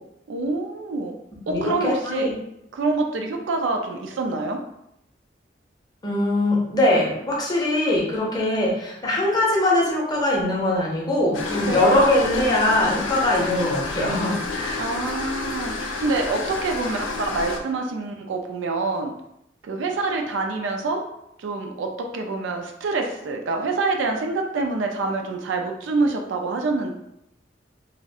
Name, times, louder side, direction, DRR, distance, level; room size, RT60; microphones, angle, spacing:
voice 1, 0.3-1.2 1.5-2.3 2.7-4.6 11.6-12.0 14.8-19.1 19.6-21.0 21.4-26.9, right 3 dB, 75° right, 3 dB, 0.4 m, -26 dB
voice 2, 1.5-2.3 6.0-14.9, left 1 dB, 20° left, -3 dB, 0.5 m, -22 dB
sound 1, 11.3-17.6, left 3 dB, 80° left, 0.4 m, -30 dB
2.3 x 2.1 x 2.7 m, 0.80 s
head